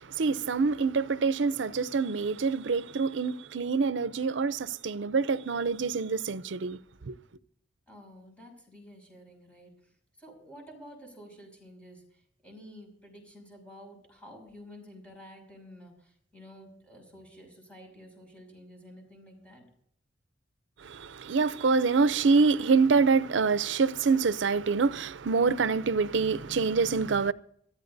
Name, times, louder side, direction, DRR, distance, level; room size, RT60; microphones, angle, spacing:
voice 1, 0.0-6.8 7.1-7.2 20.8-27.3, right 4 dB, 75° right, 0.6 m, -26 dB
voice 2, 7.9-19.6, equal, 5° left, 5.9 m, -51 dB
24.0 x 14.5 x 2.7 m
head